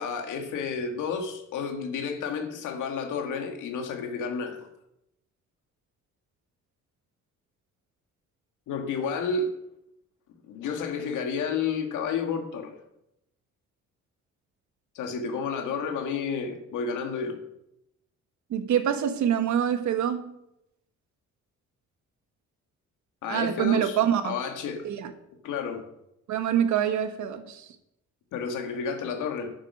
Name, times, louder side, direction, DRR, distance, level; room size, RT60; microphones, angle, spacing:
voice 1, 0.0-4.7 8.7-9.5 10.4-12.8 14.9-17.4 23.2-24.0 24.2-24.9 25.4-25.9 28.3-29.5, left 5 dB, 85° left, 4 dB, 2.1 m, -31 dB
voice 2, 18.5-20.3 23.3-24.3 24.8-25.1 26.3-27.6, right 9 dB, 70° right, 9 dB, 1.3 m, -25 dB
8.9 x 7.5 x 6.4 m, 0.81 s
cardioid pair, 90°, 30 cm